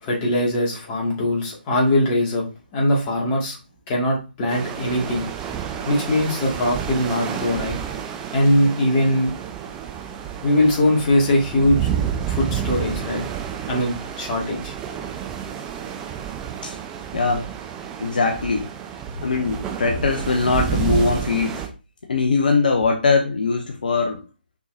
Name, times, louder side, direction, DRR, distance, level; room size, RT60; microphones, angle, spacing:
voice 1, 0.0-2.4 2.7-3.6 3.9-5.3 5.8-7.7 8.3-9.4 10.4-11.9 12.2-13.2 13.7-14.7, left 1 dB, 20° left, 2.4 m, -21 dB
sound 1, 4.5-21.7, right 8 dB, 15° right, 0.8 m, -30 dB
voice 2, 17.1-17.5 18.0-18.7 19.2-21.6 22.1-24.2, left 4 dB, 55° left, 1.0 m, -21 dB
6.1 x 5.7 x 2.8 m
figure-of-eight pair, 140°, 6 cm